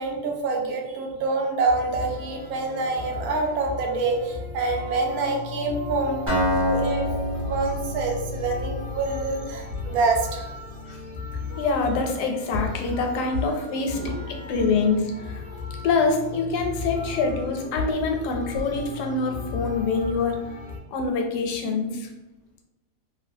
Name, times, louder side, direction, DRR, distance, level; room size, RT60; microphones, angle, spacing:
voice 1, 0.0-7.1 7.5-10.5 14.0-14.2, right 3 dB, 75° right, 1 dB, 1.0 m, -26 dB
sound 1, 1.7-20.8, left 5 dB, 40° left, 0.4 m, -36 dB
Acoustic guitar, 6.3-10.1, equal, 30° right, 0.6 m, -28 dB
voice 2, 11.6-15.4 15.8-20.4 20.9-22.1, left 4 dB, 80° left, 3 dB, 1.1 m, -25 dB
2.7 x 2.3 x 2.6 m, 1.0 s
omnidirectional pair, 1.7 m